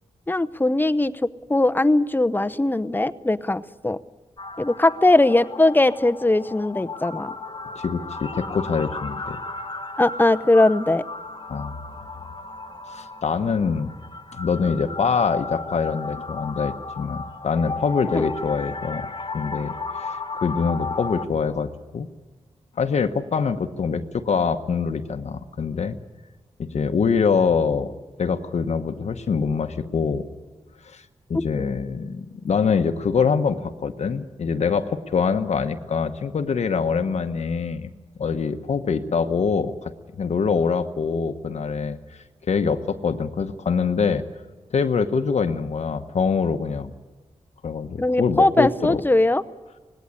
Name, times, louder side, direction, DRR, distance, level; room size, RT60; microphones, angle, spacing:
voice 1, 0.3-4.0 4.6-7.3 10.0-11.0 18.1-18.2 31.3-31.7 48.0-49.4, left 2 dB, 15° left, 15 dB, 0.8 m, -20 dB
sound 1, 4.4-21.3, left 3 dB, 40° left, 1.3 m, -34 dB
voice 2, 7.8-9.4 11.5-11.8 12.9-13.9 14.3-19.1 19.3-22.1 22.8-26.0 26.6-27.9 28.2-30.3 30.8-31.0 31.3-37.9 38.2-39.9 40.2-42.0 42.5-44.2 44.7-46.9 47.6-49.0, left 5 dB, 70° left, 7 dB, 1.0 m, -24 dB
19.5 x 17.0 x 9.6 m, 1.3 s
cardioid pair, 70°, 12 cm